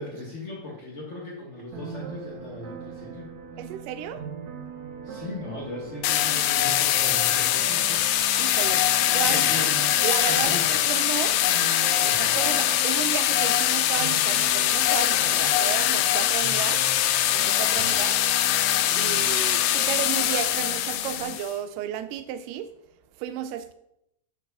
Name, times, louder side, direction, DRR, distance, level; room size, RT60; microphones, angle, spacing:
voice 1, 0.0-3.3 5.0-8.1 9.3-10.7 12.0-12.4 17.7-17.9, left 1 dB, 65° left, -3 dB, 0.7 m, -38 dB
sound 1, 1.7-21.3, right 4 dB, 65° right, 2.2 m, -40 dB
voice 2, 3.6-4.3 8.4-9.7 10.0-11.4 12.2-16.8 17.5-18.2 19.0-22.7 23.2-23.7, right 10 dB, 85° right, 10 dB, 2.1 m, -33 dB
sound 2, 6.0-21.5, left 12 dB, 85° left, 1.6 m, -23 dB
8.3 x 4.5 x 6.9 m, 0.81 s
omnidirectional pair, 3.8 m